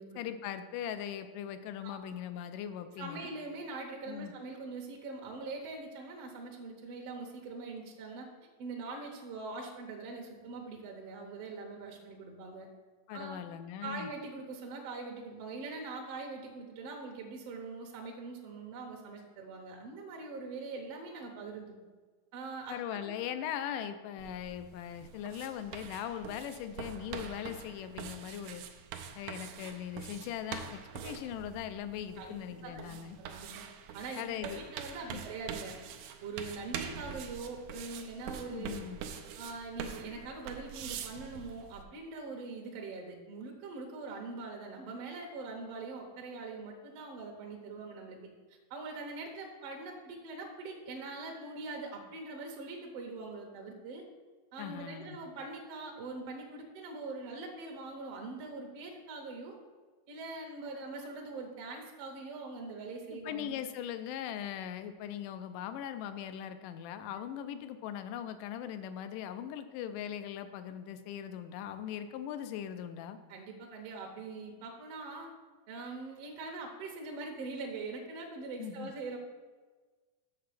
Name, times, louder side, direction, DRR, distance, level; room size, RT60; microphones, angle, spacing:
voice 1, 0.2-3.3 4.1-4.3 13.1-14.1 22.7-28.6 29.2-33.2 34.2-34.6 35.1-35.2 38.5-39.0 54.6-55.2 63.1-73.2 78.6-78.9, left 10 dB, 80° left, 10 dB, 2.1 m, -40 dB
voice 2, 3.0-8.3 8.6-12.7 13.1-13.4 13.8-21.8 22.3-23.1 32.2-33.7 33.9-35.8 36.2-38.8 39.4-48.2 48.7-54.0 54.5-59.6 60.1-63.5 73.3-75.3 75.7-79.2, right 3 dB, 65° right, 1 dB, 1.6 m, -43 dB
sound 1, 24.2-41.8, right 8 dB, 85° right, 1.6 m, -45 dB
6.9 x 6.6 x 5.9 m, 1.4 s
omnidirectional pair, 3.9 m